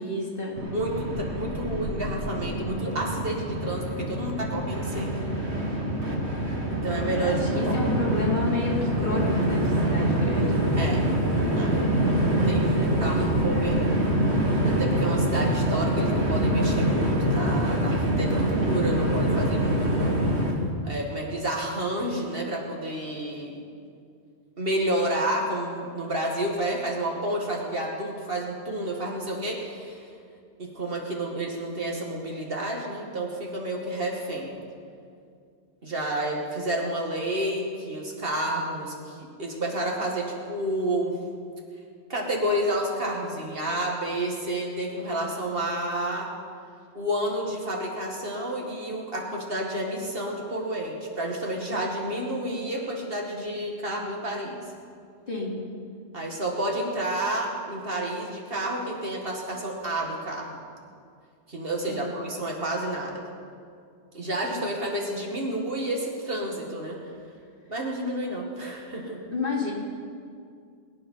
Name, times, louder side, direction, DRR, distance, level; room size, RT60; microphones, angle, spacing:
voice 1, 0.0-0.5 7.2-10.6 12.7-13.8 55.3-55.6 61.9-62.1 69.3-69.7, left 3 dB, 50° left, -5 dB, 3.4 m, -31 dB
Train, 0.6-20.5, right 1 dB, 75° right, 2.5 m, -25 dB
voice 2, 0.7-5.1 6.8-7.4 7.7-7.8 10.8-11.0 11.6-11.7 12.2-13.8 14.7-20.1 20.8-23.6 24.6-30.0 30.6-34.5 35.8-41.1 42.1-46.3 46.9-54.6 56.1-60.5 61.5-63.2 64.1-67.0 67.7-69.2, right 1 dB, 55° right, -1 dB, 2.3 m, -30 dB
23.0 x 9.4 x 5.6 m, 2.3 s
omnidirectional pair, 1.2 m